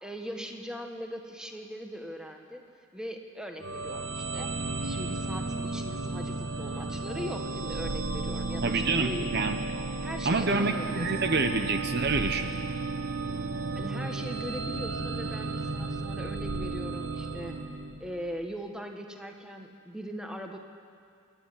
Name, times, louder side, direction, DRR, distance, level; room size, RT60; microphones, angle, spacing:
voice 1, 0.0-2.6 2.9-4.5 4.8-9.3 10.0-11.3 13.7-20.6, equal, 5° right, 3 dB, 1.5 m, -40 dB
sound 1, 3.6-18.3, right 3 dB, 75° right, 1.3 m, -33 dB
voice 2, 8.6-9.6 10.2-12.5, right 3 dB, 50° right, 7 dB, 0.9 m, -27 dB
27.0 x 9.9 x 9.9 m, 2.3 s
head